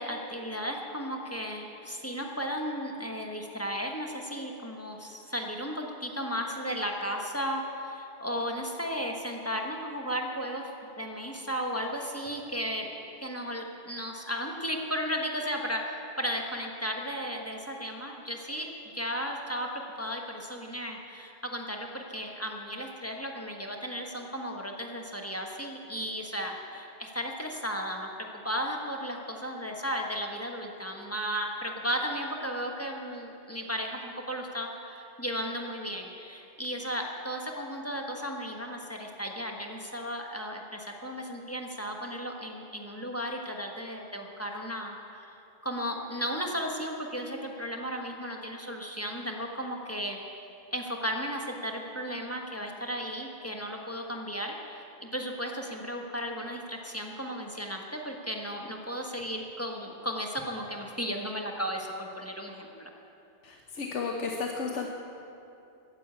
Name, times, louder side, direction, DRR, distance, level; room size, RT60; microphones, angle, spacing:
voice 1, 0.0-12.9 13.2-15.8 16.2-18.7 18.9-19.7 20.0-28.1 28.4-45.3 45.6-50.2 50.7-62.9, equal, 15° left, 2 dB, 1.3 m, -35 dB
voice 2, 63.4-64.9, left 4 dB, 80° left, 2 dB, 1.3 m, -33 dB
15.0 x 10.0 x 8.5 m, 2.8 s
omnidirectional pair, 1.2 m